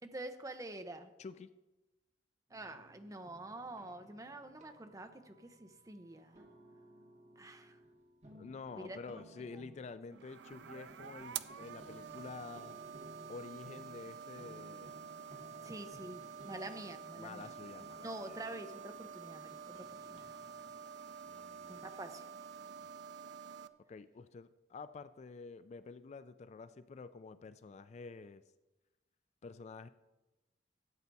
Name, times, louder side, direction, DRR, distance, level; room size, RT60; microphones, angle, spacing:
voice 1, 0.1-1.1 2.5-6.4 7.4-7.8 8.8-9.0 9.5-9.6 15.6-17.5 18.0-20.3 21.7-22.2, right 2 dB, 20° right, 8 dB, 0.7 m, -47 dB
sound 1, 2.5-20.7, equal, 40° right, 1.8 m, -59 dB
voice 2, 8.4-12.8 13.3-14.9 17.2-18.4 21.3-21.9 23.9-28.4 29.4-29.9, left 4 dB, 35° left, 13 dB, 0.3 m, -49 dB
sound 2, 10.1-23.7, right 7 dB, 65° right, 0.4 m, -48 dB
13.0 x 8.2 x 4.1 m, 1.1 s
head